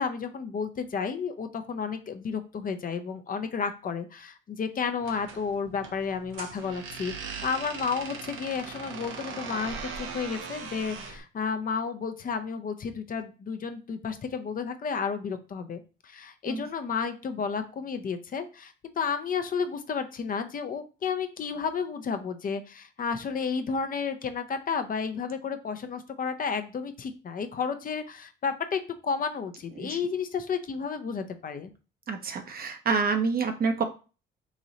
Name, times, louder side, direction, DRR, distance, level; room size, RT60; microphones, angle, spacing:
voice 1, 0.0-31.7, left 5 dB, 45° left, 8 dB, 0.6 m, -32 dB
sound 1, 5.0-11.2, right 5 dB, 85° right, 0.7 m, -40 dB
voice 2, 32.1-33.8, right 5 dB, 50° right, 6 dB, 0.7 m, -27 dB
3.0 x 2.6 x 3.9 m, 0.33 s
cardioid pair, 90°, 20 cm